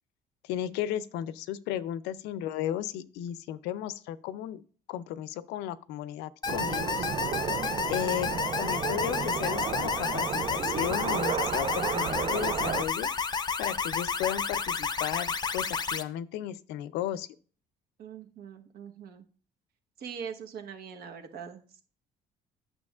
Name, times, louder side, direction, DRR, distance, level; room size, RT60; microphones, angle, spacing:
voice 1, 0.4-4.6 4.9-7.1 7.9-13.1 13.6-17.4, left 11 dB, 90° left, 16 dB, 0.5 m, -34 dB
sound 1, 6.4-16.0, left 5 dB, 25° left, 0.6 m, -31 dB
sound 2, 6.5-12.8, right 8 dB, 35° right, 0.4 m, -33 dB
voice 2, 18.0-19.2 20.0-21.8, right 7 dB, 65° right, 5 dB, 1.2 m, -42 dB
9.6 x 6.8 x 2.4 m, 0.41 s
cardioid pair, 110°, 17 cm